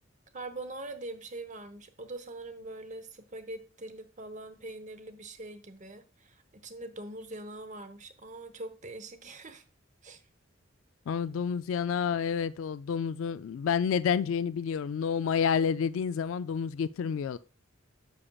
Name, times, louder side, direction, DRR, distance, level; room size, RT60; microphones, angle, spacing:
voice 1, 0.3-9.6 10.0-10.2, right 2 dB, 35° right, 0.8 m, -43 dB
voice 2, 11.1-17.4, left 7 dB, 70° left, 0.3 m, -29 dB
10.0 x 7.2 x 2.3 m
head